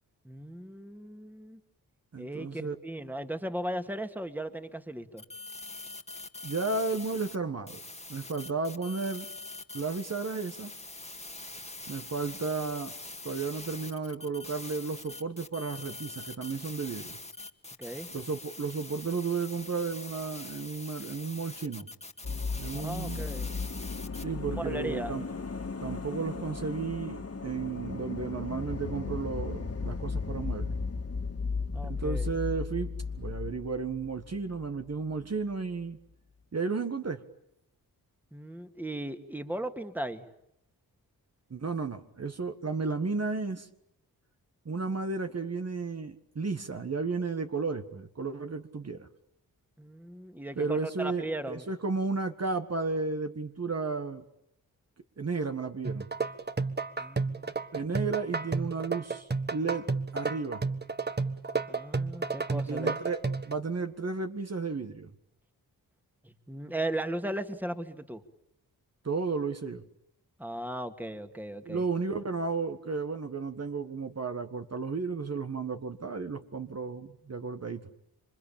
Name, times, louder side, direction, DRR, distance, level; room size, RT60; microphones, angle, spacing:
voice 1, 0.2-1.6 2.2-5.2 17.8-18.1 22.7-23.5 24.6-25.2 31.7-32.3 38.3-40.3 49.8-51.7 57.0-57.5 61.7-63.0 66.2-68.2 70.4-71.8, right 1 dB, 5° right, 7 dB, 2.2 m, -37 dB
voice 2, 2.1-2.7 6.4-7.8 8.1-9.3 9.7-10.7 11.9-12.9 13.2-17.2 18.1-21.9 22.6-23.3 24.2-25.2 25.8-30.7 31.8-32.9 33.2-36.0 36.5-37.2 41.5-43.7 44.6-49.1 50.6-54.2 55.2-56.1 57.7-59.9 60.1-60.6 62.5-65.1 69.0-69.8 71.6-77.9, right 4 dB, 40° right, 7 dB, 1.7 m, -33 dB
sound 1, 5.2-7.4 7.7-24.2, left 2 dB, 15° left, 1.9 m, -44 dB
sound 2, 22.2-34.7 34.9-35.0, left 4 dB, 40° left, 2.4 m, -35 dB
sound 3, 55.8-63.5, right 4 dB, 25° right, 1.5 m, -32 dB
28.0 x 24.5 x 8.8 m, 0.79 s
cardioid pair, 65°, 37 cm